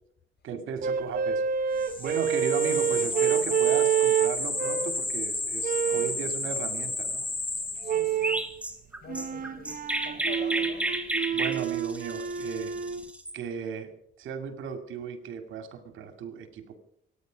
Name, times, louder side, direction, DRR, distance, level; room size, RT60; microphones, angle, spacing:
voice 1, 0.4-1.4 1.7-7.2 11.3-12.7 13.3-16.8, right 6 dB, 80° right, 9 dB, 2.4 m, -36 dB
sound 1, 0.8-5.0 5.6-6.2 7.8-8.5 9.1-13.0, right 8 dB, 45° right, 1.0 m, -28 dB
voice 2, 1.8-2.2 7.8-8.5 9.0-10.9, left 5 dB, 55° left, 7 dB, 4.5 m, -46 dB
sound 2, 1.8-8.3, left 2 dB, 25° left, 2.7 m, -32 dB
Chirp tweet, 8.2-13.4, right 1 dB, 5° right, 2.6 m, -32 dB
26.0 x 10.0 x 5.1 m, 0.67 s
cardioid pair, 90°, 20 cm